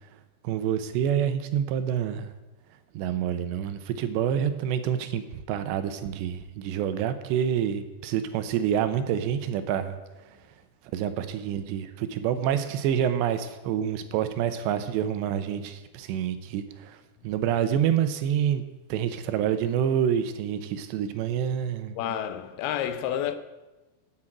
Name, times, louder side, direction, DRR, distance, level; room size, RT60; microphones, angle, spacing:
voice 1, 0.4-2.3 2.9-10.0 10.9-17.0 17.2-18.6 18.9-22.0, right 9 dB, 80° right, 3.1 m, -27 dB
voice 2, 22.0-23.4, left 10 dB, 75° left, 2.5 m, -29 dB
9.9 x 9.3 x 8.8 m
omnidirectional pair, 5.0 m